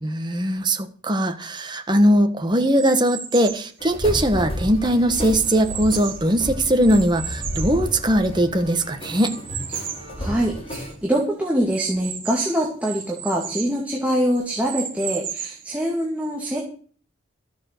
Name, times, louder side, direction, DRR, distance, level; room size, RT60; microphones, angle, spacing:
voice 1, 0.0-9.3, right 1 dB, 20° right, 6 dB, 1.4 m, -20 dB
sound 1, 2.7-3.7 4.3-6.3 6.8-8.5 9.1-10.1 10.6-10.7 10.9-11.0 11.7-13.8 14.3-15.7, right 8 dB, 45° right, 3.9 m, -34 dB
sound 2, 3.8-10.9, equal, 30° left, 3.7 m, -32 dB
voice 2, 10.2-16.6, equal, 5° right, -3 dB, 2.4 m, -24 dB
14.0 x 6.8 x 6.7 m, 0.42 s
head